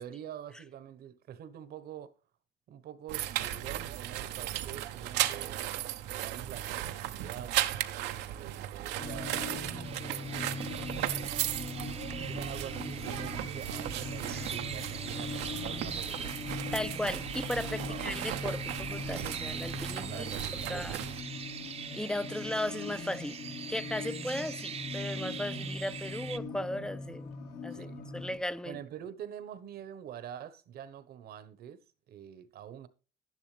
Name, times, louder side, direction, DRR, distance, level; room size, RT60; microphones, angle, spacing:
voice 1, 0.0-2.1 2.7-5.6 6.0-7.6 8.1-11.3 12.2-16.5 17.9-18.1 19.9-21.2 27.7-28.0 28.6-31.8 32.1-32.9, right 10 dB, 65° right, 1.1 m, -46 dB
sound 1, 3.1-21.2, right 13 dB, 90° right, 0.9 m, -36 dB
sound 2, 9.0-28.4, left 3 dB, 70° left, 2.7 m, -41 dB
sound 3, 9.8-26.4, right 7 dB, 40° right, 0.8 m, -43 dB
voice 2, 16.7-20.3 20.7-21.0 21.9-23.4 23.7-27.3 27.6-28.8, left 1 dB, 5° left, 0.5 m, -36 dB
11.0 x 11.0 x 3.3 m
cardioid pair, 110°, 17 cm